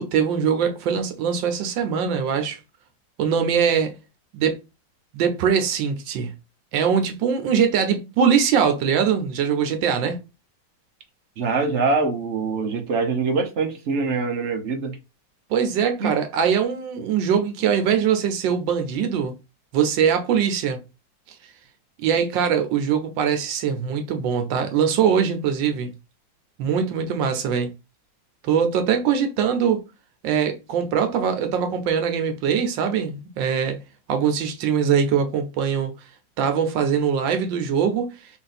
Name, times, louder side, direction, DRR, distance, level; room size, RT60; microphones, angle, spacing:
voice 1, 0.0-2.6 3.2-3.9 4.3-4.5 5.1-6.3 6.7-10.2 15.5-19.3 19.7-20.8 22.0-25.9 26.6-27.7 28.4-29.8 30.2-33.8 34.1-35.9 36.4-38.1, right 7 dB, 80° right, 1.4 m, -22 dB
voice 2, 11.4-15.0 16.0-16.1, right 4 dB, 55° right, 0.8 m, -24 dB
4.0 x 2.6 x 4.0 m
omnidirectional pair, 2.0 m